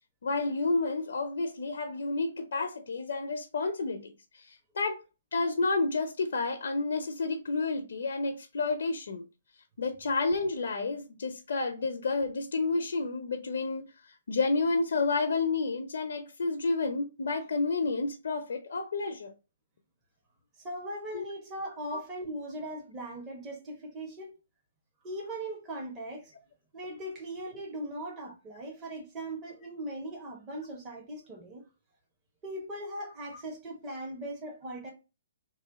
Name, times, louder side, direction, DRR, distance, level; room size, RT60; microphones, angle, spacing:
voice 1, 0.2-5.0 5.3-9.2 9.8-19.3 21.1-21.2 21.9-22.0, left 3 dB, 70° left, 0.6 m, -30 dB
voice 2, 20.6-24.4 25.0-26.3 26.7-31.6 32.4-34.9, right 1 dB, 25° right, 1.2 m, -39 dB
3.1 x 2.6 x 3.9 m
hypercardioid pair, 140°, 0 cm